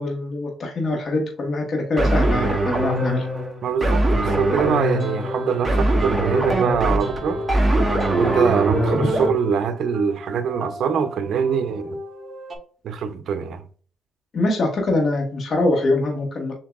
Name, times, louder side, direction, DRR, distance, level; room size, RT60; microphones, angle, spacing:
voice 1, 0.0-3.3 8.9-9.1 14.3-16.5, left 2 dB, 50° left, 1.3 m, -23 dB
sound 1, 2.0-9.3, right 1 dB, 20° right, 1.3 m, -21 dB
voice 2, 3.6-7.4 8.2-12.0 12.8-13.6, right 7 dB, 65° right, 0.6 m, -24 dB
sound 2, 4.1-12.6, equal, 40° right, 1.5 m, -35 dB
7.0 x 2.7 x 2.4 m
cardioid pair, 90°, 0 cm